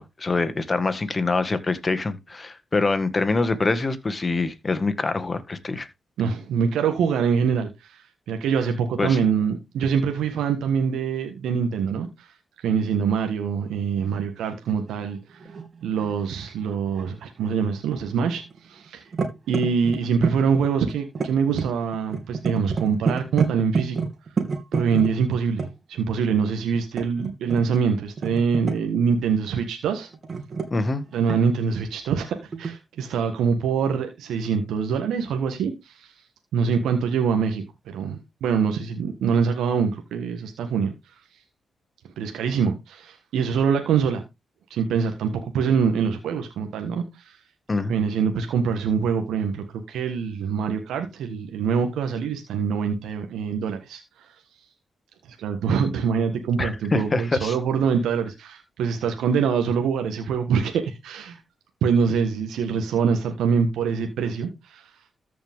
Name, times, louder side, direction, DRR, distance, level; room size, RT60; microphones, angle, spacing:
voice 1, 0.0-5.9 9.0-9.2 30.7-31.0 47.7-47.9 56.6-57.5, left 3 dB, 35° left, 1.8 m, -25 dB
voice 2, 6.2-15.4 15.8-19.0 19.5-24.0 24.7-30.1 31.1-36.1 36.5-40.9 42.2-44.2 44.7-47.4 47.9-54.3 55.3-61.4 61.8-64.9, right 6 dB, 85° right, 1.4 m, -24 dB
sound 1, 14.0-14.2 14.7-17.1 17.4-18.6 18.9-25.7 26.7-27.8 28.2-29.0 30.1-31.6 32.5-32.7, right 4 dB, 55° right, 2.4 m, -29 dB
14.0 x 5.2 x 3.6 m
supercardioid pair, 50°, 0 cm